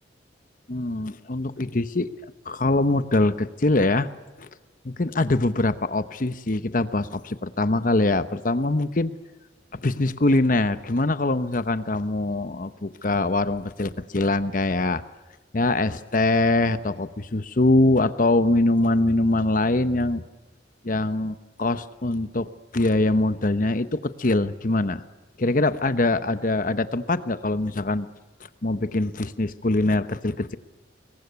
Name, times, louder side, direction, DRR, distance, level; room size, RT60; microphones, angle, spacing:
voice 1, 0.7-4.1 4.4-4.5 4.8-9.1 9.8-15.0 15.5-20.2 20.8-25.0 25.4-28.1 28.6-30.5, left 2 dB, 45° left, 12 dB, 1.0 m, -23 dB
26.0 x 22.5 x 9.4 m, 1.1 s
head